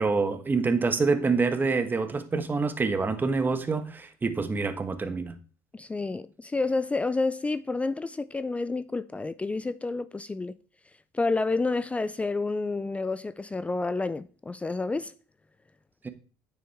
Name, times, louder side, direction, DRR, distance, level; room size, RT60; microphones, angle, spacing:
voice 1, 0.0-5.4 16.0-16.1, right 4 dB, 20° right, 1.3 m, -26 dB
voice 2, 5.7-10.5 11.1-15.1, left 3 dB, 15° left, 0.4 m, -29 dB
9.3 x 7.0 x 3.5 m
supercardioid pair, 85°, 9 cm